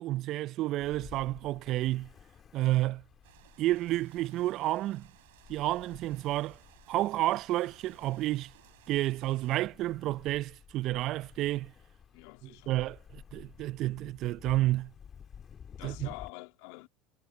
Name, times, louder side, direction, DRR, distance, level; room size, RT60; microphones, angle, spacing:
voice 1, 0.0-2.1 2.5-3.0 3.6-5.1 5.5-6.6 6.9-8.5 8.9-11.7 12.7-14.9 15.8-16.1, right 16 dB, 55° right, 0.5 m, -30 dB
Ocean, 0.8-16.3, left 7 dB, 35° left, 2.3 m, -53 dB
sound 1, 3.2-9.6, right 20 dB, 75° right, 5.0 m, -61 dB
voice 2, 12.1-12.8 15.8-16.9, left 27 dB, 70° left, 2.2 m, -46 dB
hypercardioid pair, 75°, 0 cm